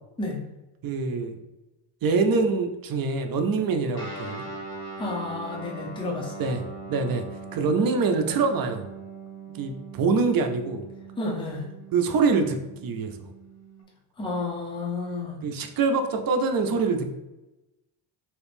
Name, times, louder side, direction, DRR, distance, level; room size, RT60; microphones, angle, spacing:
voice 1, 0.8-1.3 2.0-4.5 6.4-6.6 6.9-7.2 7.5-8.8 9.5-10.8 11.9-13.2 15.4-17.1, right 4 dB, 50° right, 6 dB, 0.5 m, -24 dB
Guitar, 3.9-13.8, right 3 dB, 50° left, 1.2 m, -41 dB
voice 2, 5.0-6.3 11.2-11.7 14.2-15.4, left 2 dB, 10° left, -1 dB, 0.6 m, -31 dB
3.0 x 2.6 x 3.3 m, 1.0 s
cardioid pair, 100°, 47 cm